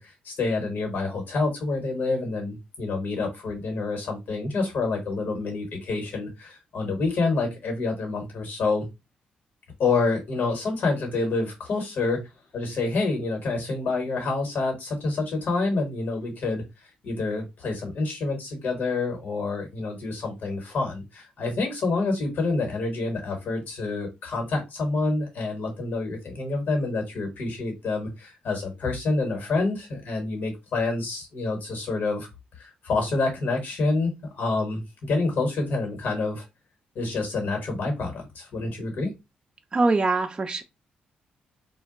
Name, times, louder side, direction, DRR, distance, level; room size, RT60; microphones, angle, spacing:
voice 1, 0.0-8.9 9.8-12.2 12.5-32.3 32.5-36.4 36.9-39.1, left 3 dB, 65° left, 1.2 m, -27 dB
voice 2, 39.7-40.6, right 3 dB, 30° right, 0.4 m, -23 dB
2.2 x 2.2 x 3.7 m
cardioid pair, 70°, 3 cm